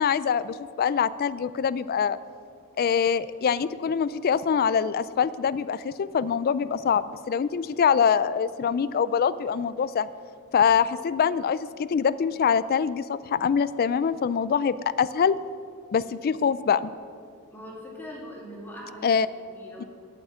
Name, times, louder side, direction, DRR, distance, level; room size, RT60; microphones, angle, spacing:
voice 1, 0.0-2.2 2.8-10.1 10.5-15.4 15.9-16.9 19.0-19.3 19.8-19.9, left 7 dB, 40° left, 16 dB, 0.3 m, -24 dB
voice 2, 17.5-19.1 19.5-19.8, equal, 10° left, -3 dB, 2.5 m, -41 dB
8.7 x 8.5 x 8.4 m, 2.2 s
head